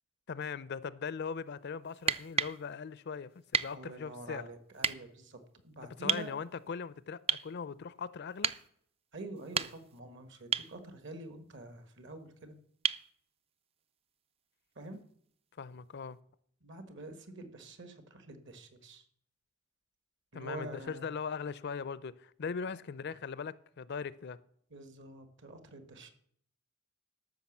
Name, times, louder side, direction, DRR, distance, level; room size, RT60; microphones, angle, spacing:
voice 1, 0.3-4.4 6.0-8.5 15.6-16.2 20.3-24.4, left 6 dB, 55° left, 0.5 m, -40 dB
sound 1, 1.9-2.6 3.5-3.7 4.8-5.0 6.1-6.3 7.3-7.5 8.4-8.6 9.4-10.0 10.5-10.7 12.8-13.1 14.9-15.0, right 7 dB, 30° right, 0.4 m, -31 dB
voice 2, 3.7-6.3 9.1-12.5 14.7-15.0 16.6-19.1 20.3-21.1 24.7-26.1, right 2 dB, 60° right, 1.6 m, -47 dB
13.0 x 6.1 x 7.2 m
head